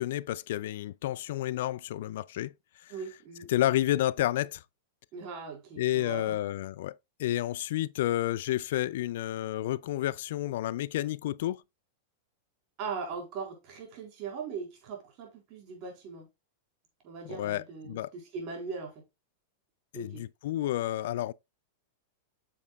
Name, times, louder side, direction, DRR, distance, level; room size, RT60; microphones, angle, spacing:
voice 1, 0.0-2.5 2.8-2.9 3.5-4.6 5.8-11.6 17.3-18.1 19.9-21.3, left 14 dB, 70° left, 0.3 m, -30 dB
voice 2, 2.9-3.5 5.1-6.4 12.8-16.3 17.0-18.9 19.9-20.3, right 5 dB, 45° right, 3.9 m, -40 dB
8.2 x 6.9 x 2.3 m
hypercardioid pair, 110°, 0 cm